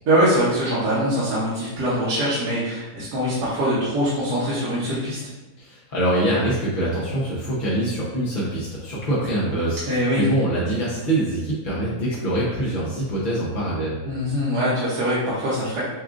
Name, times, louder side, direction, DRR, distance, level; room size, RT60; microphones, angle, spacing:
voice 1, 0.1-5.2 9.9-10.2 14.0-15.8, equal, 65° right, -9 dB, 1.5 m, -23 dB
voice 2, 5.6-14.0, right 1 dB, 45° left, -7 dB, 0.6 m, -24 dB
7.3 x 2.5 x 2.4 m, 1.1 s
omnidirectional pair, 1.9 m